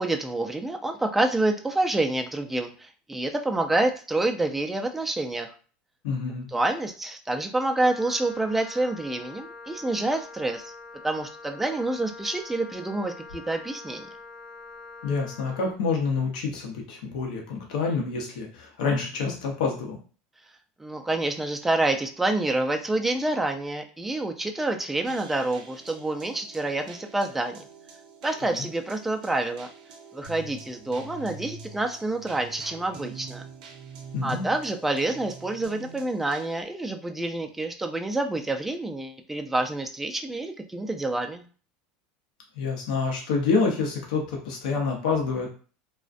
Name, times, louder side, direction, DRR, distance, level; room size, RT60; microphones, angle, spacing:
voice 1, 0.0-5.5 6.5-10.7 11.0-14.1 20.8-27.6 28.2-29.7 30.1-33.4 34.2-41.5, right 2 dB, 5° right, 4 dB, 0.3 m, -27 dB
voice 2, 6.0-6.5 15.0-20.0 28.4-28.6 34.1-34.5 42.6-45.5, left 4 dB, 85° left, 0 dB, 0.6 m, -27 dB
Wind instrument woodwind instrument, 7.7-15.8, left 3 dB, 25° left, 0.7 m, -44 dB
sound 1, 25.0-36.6, right 5 dB, 85° right, 0.5 m, -45 dB
2.4 x 2.1 x 2.4 m, 0.39 s
supercardioid pair, 125°, 4 cm